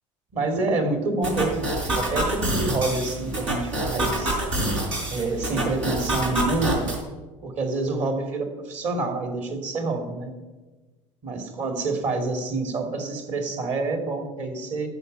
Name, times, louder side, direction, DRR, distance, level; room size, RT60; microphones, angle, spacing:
voice 1, 0.3-4.4 5.1-6.9 7.4-10.3 11.2-14.9, right 3 dB, 45° right, 5 dB, 2.7 m, -27 dB
sound 1, 1.2-7.0, right 1 dB, 75° right, 3.7 m, -27 dB
13.0 x 5.8 x 9.0 m, 1.2 s
figure-of-eight pair, 65°, 17 cm